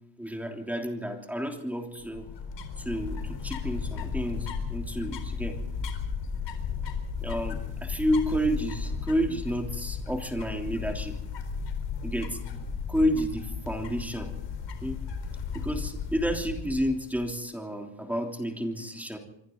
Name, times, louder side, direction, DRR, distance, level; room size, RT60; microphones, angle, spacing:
voice 1, 0.2-2.3 2.8-5.6 7.2-11.2 12.0-12.4 12.9-14.3 14.8-15.0 15.5-19.2, equal, 5° right, 2 dB, 3.3 m, -30 dB
sound 1, 2.0-17.3, left 5 dB, 75° left, 4.4 m, -35 dB
26.5 x 25.0 x 4.0 m, 0.80 s
wide cardioid pair, 155°, 43 cm